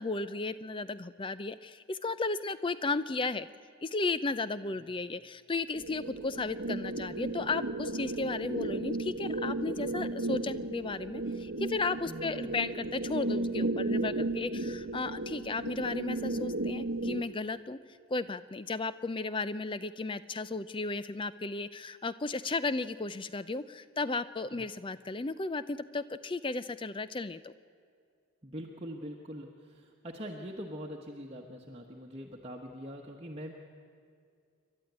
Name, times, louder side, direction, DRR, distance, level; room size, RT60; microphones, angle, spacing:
voice 1, 0.0-3.5 3.8-17.8 18.1-27.5, left 3 dB, 20° left, 15 dB, 0.4 m, -34 dB
sound 1, 5.7-17.2, right 2 dB, 60° right, 1.0 m, -34 dB
voice 2, 12.1-12.6 24.5-24.6 28.4-33.5, equal, 25° right, -1 dB, 1.2 m, -43 dB
28.0 x 12.0 x 9.4 m, 2.3 s
head